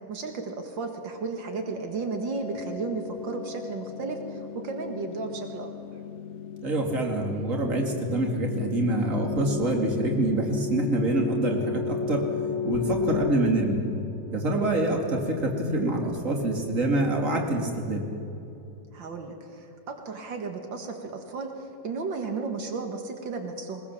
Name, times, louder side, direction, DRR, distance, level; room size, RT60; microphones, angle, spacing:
voice 1, 0.1-5.7 18.9-23.8, right 4 dB, 85° right, 4 dB, 2.4 m, -34 dB
sound 1, 1.8-14.5, left 7 dB, 70° left, 0.6 m, -35 dB
voice 2, 6.6-12.3 12.6-13.8 14.3-18.1, right 2 dB, 45° right, 1 dB, 3.0 m, -26 dB
21.5 x 20.5 x 7.2 m, 2.9 s
omnidirectional pair, 2.0 m